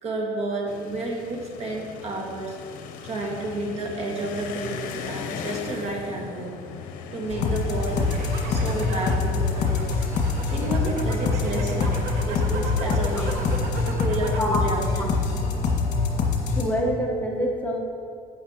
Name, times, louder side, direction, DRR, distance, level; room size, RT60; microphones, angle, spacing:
voice 1, 0.0-2.6 3.0-6.6 7.1-8.1 8.5-9.9 10.5-11.9 12.2-13.4 13.8-15.3, right 2 dB, 45° right, -1 dB, 1.7 m, -31 dB
sound 1, 0.7-14.0, left 6 dB, 70° left, 0.8 m, -39 dB
sound 2, 7.3-16.6, left 4 dB, 55° left, 1.6 m, -25 dB
sound 3, 7.8-14.6 14.9-15.5, right 3 dB, 70° right, 1.0 m, -36 dB
voice 2, 16.6-17.8, equal, 10° left, -2 dB, 1.0 m, -26 dB
11.0 x 8.4 x 2.9 m, 2.3 s
cardioid pair, 130°, 15 cm